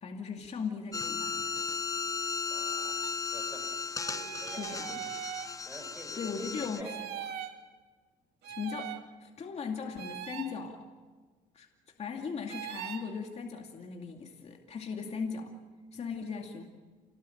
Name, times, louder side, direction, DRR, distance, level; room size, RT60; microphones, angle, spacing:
voice 1, 0.0-1.6 4.5-5.0 6.1-6.9 8.4-8.9 9.2-10.8 11.5-11.7 12.0-15.5 15.9-16.6, left 5 dB, 40° left, 2 dB, 2.5 m, -38 dB
sound 1, 0.9-6.8, left 5 dB, 20° left, 0.7 m, -36 dB
voice 2, 2.5-3.7 4.0-5.2 5.6-7.3, right 1 dB, 10° right, 3 dB, 7.3 m, -49 dB
sound 2, 3.0-3.1 3.9-5.5 6.8-7.6 8.4-9.0 10.0-10.5 12.5-13.1, right 10 dB, 75° right, 2.6 m, -40 dB
28.5 x 20.0 x 9.2 m, 1.4 s
cardioid pair, 110°, 17 cm